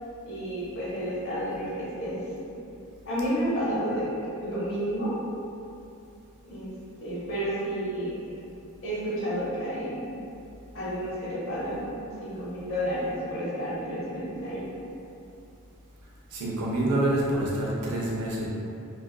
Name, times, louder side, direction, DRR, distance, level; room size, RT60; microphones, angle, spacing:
voice 1, 0.2-2.2 3.0-4.1 4.4-5.1 6.4-6.7 7.0-8.1 8.8-10.1 10.7-14.6, equal, 60° left, -8 dB, 0.8 m, -31 dB
voice 2, 16.3-18.5, right 1 dB, 85° right, -5 dB, 0.6 m, -27 dB
2.4 x 2.2 x 2.2 m, 2.6 s
head